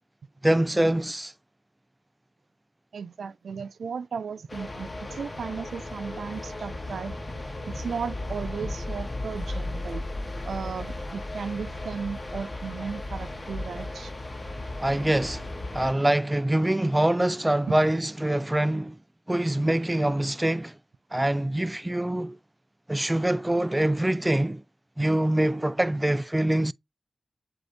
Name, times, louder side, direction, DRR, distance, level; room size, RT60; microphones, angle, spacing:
voice 1, 0.4-1.3 14.8-15.4 15.7-19.0 19.3-20.7 21.1-22.4 22.9-24.6 25.0-26.7, right 1 dB, 15° right, 0.3 m, -24 dB
voice 2, 2.9-7.2 7.6-10.0 10.5-14.1 17.6-17.7, right 6 dB, 85° right, 0.4 m, -35 dB
sound 1, 4.5-15.9, left 2 dB, 40° left, 1.0 m, -35 dB
7.7 x 2.6 x 2.6 m
cardioid pair, 45°, 0 cm